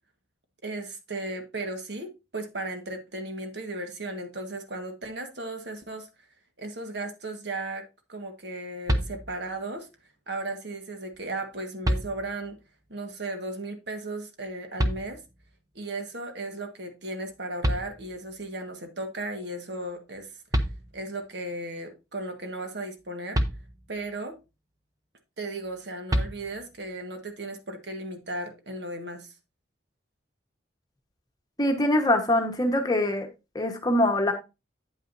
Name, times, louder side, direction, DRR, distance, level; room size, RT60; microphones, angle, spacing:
voice 1, 0.6-6.1 6.6-9.9 10.3-12.6 12.9-15.2 15.7-20.3 20.6-20.7 20.9-23.4 23.9-24.4 25.4-29.3, right 2 dB, 60° right, 1.5 m, -36 dB
sound 1, 8.9-9.6 11.1-11.2 11.8-12.6 14.8-15.5 17.3-17.4 17.6-18.5 20.2-20.3 20.5-21.3 23.3-24.1 26.1-26.9, equal, 20° right, 0.6 m, -29 dB
voice 2, 31.6-33.3 33.5-34.3, left 1 dB, 20° left, 1.1 m, -23 dB
8.7 x 8.5 x 2.6 m
head